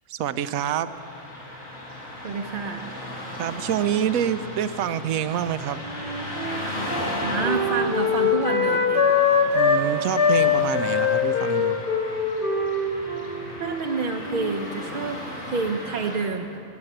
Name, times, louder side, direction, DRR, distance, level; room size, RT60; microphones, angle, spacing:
voice 1, 0.1-0.9 3.4-5.8 9.5-11.8, right 9 dB, 85° right, 12 dB, 1.0 m, -27 dB
Car passing by / Traffic noise roadway noise, 0.9-16.2, left 1 dB, 75° left, 4.4 m, -36 dB
voice 2, 2.2-2.9 7.2-9.2 13.6-16.6, right 4 dB, 45° right, 2 dB, 0.7 m, -29 dB
Wind instrument woodwind instrument, 5.8-9.8 10.1-14.6, left 5 dB, 25° left, 1.6 m, -23 dB
20.5 x 8.7 x 7.9 m, 2.6 s
omnidirectional pair, 1.4 m